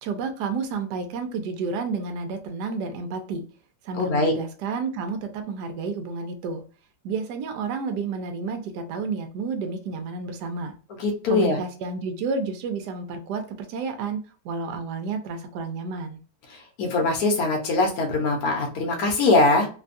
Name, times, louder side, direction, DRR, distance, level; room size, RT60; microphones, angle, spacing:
voice 1, 0.0-3.4 3.8-6.6 7.0-10.7 11.3-14.2 14.4-16.2, right 4 dB, 70° right, 6 dB, 1.1 m, -30 dB
voice 2, 3.9-4.3 11.0-11.6 16.8-19.7, left 2 dB, 60° left, 1 dB, 1.2 m, -22 dB
3.3 x 2.2 x 2.5 m, 0.38 s
omnidirectional pair, 2.2 m